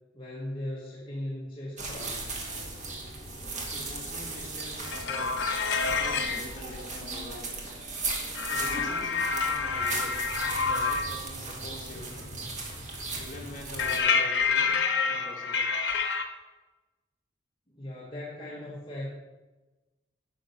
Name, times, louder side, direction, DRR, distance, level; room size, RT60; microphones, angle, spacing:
voice 1, 0.1-2.4 17.7-19.1, left 1 dB, 25° left, -6 dB, 1.6 m, -38 dB
sound 1, 1.8-14.0, right 3 dB, 40° right, 1.8 m, -37 dB
voice 2, 3.7-7.7 8.5-12.5 13.1-15.7, left 1 dB, 45° left, -2 dB, 2.5 m, -45 dB
sound 2, 4.8-6.4 8.4-11.2 13.8-16.2, left 5 dB, 75° left, 1.0 m, -28 dB
10.0 x 6.3 x 5.5 m, 1.2 s
head